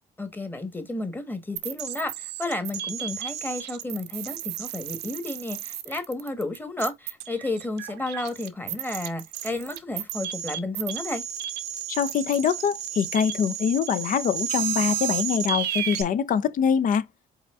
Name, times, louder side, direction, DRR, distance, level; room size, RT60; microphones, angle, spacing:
voice 1, 0.2-11.2, left 2 dB, 10° left, 1.3 m, -32 dB
sound 1, 1.6-16.0, right 10 dB, 90° right, 0.8 m, -33 dB
voice 2, 11.9-17.0, left 7 dB, 50° left, 0.6 m, -24 dB
4.9 x 4.3 x 2.4 m
cardioid pair, 110°, 17 cm